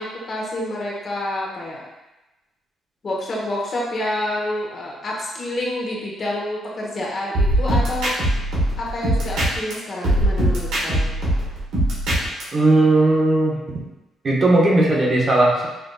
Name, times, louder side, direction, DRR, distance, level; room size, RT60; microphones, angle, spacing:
voice 1, 0.0-1.8 3.0-8.1 8.8-11.1, left 1 dB, 45° left, -4 dB, 1.1 m, -28 dB
sound 1, 7.3-9.7 10.0-12.4, right 1 dB, 85° right, 1.5 m, -21 dB
voice 2, 12.5-13.8 14.2-15.7, right 2 dB, 40° right, -3 dB, 0.9 m, -17 dB
5.7 x 2.5 x 2.3 m, 1.0 s
cardioid pair, 90°, 0 cm